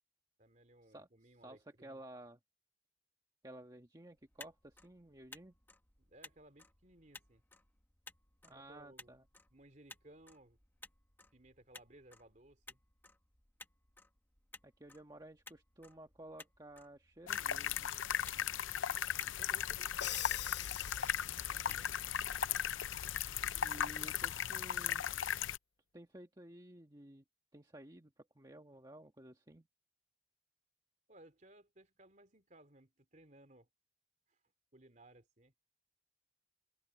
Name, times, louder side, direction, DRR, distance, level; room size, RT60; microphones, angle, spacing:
voice 1, 0.4-2.0 6.0-7.4 8.5-9.1 9.5-10.6 11.3-12.8 19.3-20.0 21.3-21.9 31.1-33.7 34.3-34.4 34.7-35.5, right 1 dB, 40° right, 3.2 m, -61 dB
voice 2, 1.4-2.4 3.4-5.5 8.4-9.2 14.6-17.9 23.5-25.1 25.9-27.2 27.5-29.7, right 1 dB, 20° right, 1.5 m, -54 dB
Motor vehicle (road), 4.2-22.7, left 2 dB, 10° left, 1.4 m, -59 dB
sound 1, 17.3-25.6, left 9 dB, 90° left, 0.6 m, -37 dB
Crash cymbal, 20.0-21.7, left 12 dB, 60° left, 0.8 m, -43 dB
head